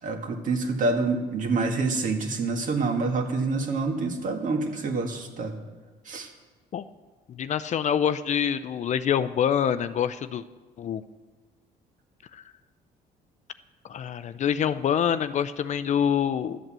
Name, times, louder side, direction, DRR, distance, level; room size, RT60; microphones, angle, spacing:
voice 1, 0.0-5.5 6.1-6.3, right 3 dB, 50° right, 4 dB, 1.9 m, -27 dB
voice 2, 7.3-10.4 10.8-11.0 12.3-12.4 13.9-16.6, left 8 dB, 45° left, 13 dB, 0.5 m, -26 dB
12.5 x 7.9 x 7.5 m, 1.3 s
cardioid pair, 110°, 17 cm